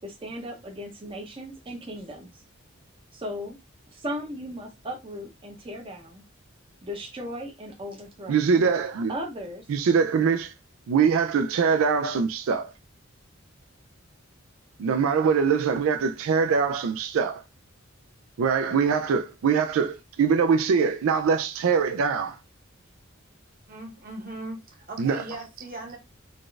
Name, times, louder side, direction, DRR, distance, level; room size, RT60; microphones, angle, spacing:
voice 1, 0.0-2.4 3.1-3.6 3.9-6.2 6.8-8.5 9.1-9.7, equal, 25° right, 0.7 m, -37 dB
voice 2, 8.3-9.1 9.7-10.5 10.9-12.7 14.8-17.4 18.4-22.4 25.0-25.2, right 6 dB, 85° right, 0.4 m, -23 dB
voice 3, 23.7-26.0, right 2 dB, 45° right, 1.3 m, -38 dB
4.1 x 2.4 x 3.2 m
head